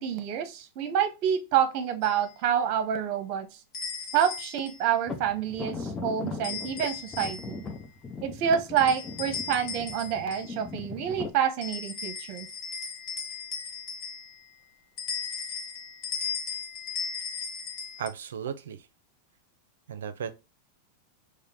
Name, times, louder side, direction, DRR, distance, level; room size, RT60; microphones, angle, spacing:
voice 1, 0.0-3.5 4.1-7.6 8.2-12.5, right 9 dB, 50° right, 0.8 m, -28 dB
sound 1, 2.0-2.2 3.7-4.8 6.4-7.7 8.8-10.6 11.6-14.5 15.0-18.1, left 6 dB, 40° left, 1.2 m, -37 dB
sound 2, 5.1-11.3, left 4 dB, 20° left, 0.8 m, -39 dB
voice 2, 18.0-18.8 19.9-20.3, right 8 dB, 85° right, 0.5 m, -35 dB
4.9 x 2.1 x 2.7 m
hypercardioid pair, 110°, 0 cm